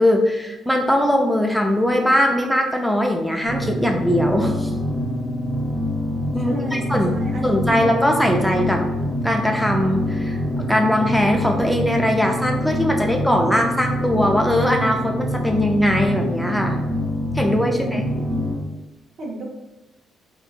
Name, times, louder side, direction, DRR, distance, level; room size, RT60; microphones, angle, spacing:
voice 1, 0.0-4.7 6.3-7.2 7.4-8.8 9.2-16.8 17.3-18.1, equal, ahead, 1 dB, 0.3 m, -20 dB
sound 1, 3.5-18.5, left 1 dB, 30° right, 0.8 m, -25 dB
voice 2, 6.4-8.1 17.6-18.6 19.2-19.4, right 2 dB, 65° right, -1 dB, 0.7 m, -34 dB
3.5 x 2.3 x 2.3 m, 1.0 s
cardioid pair, 90°, 0 cm